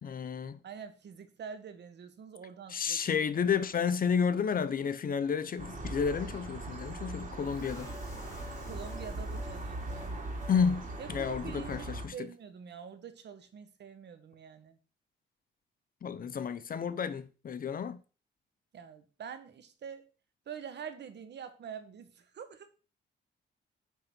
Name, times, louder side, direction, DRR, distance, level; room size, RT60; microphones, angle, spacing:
voice 1, 0.0-0.6 2.7-7.9 10.5-10.8 11.1-12.3 16.0-18.0, left 6 dB, 45° left, 0.8 m, -31 dB
voice 2, 0.6-3.1 8.6-10.2 11.0-14.8 18.7-20.1 20.5-22.7, right 7 dB, 65° right, 1.3 m, -46 dB
sound 1, 5.6-12.1, right 2 dB, 45° right, 2.5 m, -40 dB
sound 2, 7.4-10.6 10.9-11.0 11.4-11.5, left 3 dB, 15° left, 2.7 m, -51 dB
8.3 x 4.0 x 6.0 m
cardioid pair, 85°, 19 cm